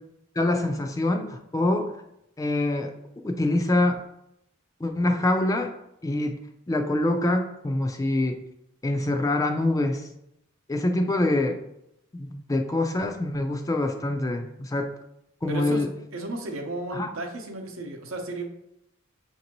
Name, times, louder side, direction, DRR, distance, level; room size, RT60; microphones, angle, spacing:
voice 1, 0.4-2.0 2.4-2.9 3.2-4.0 4.8-5.7 6.0-6.4 6.7-8.4 8.8-10.1 10.7-11.6 12.1-14.9 15.4-15.9 16.9-17.1, left 2 dB, 15° left, 5 dB, 0.3 m, -25 dB
voice 2, 15.5-18.4, right 2 dB, 85° right, 3 dB, 0.7 m, -34 dB
5.8 x 2.6 x 2.9 m, 0.80 s
head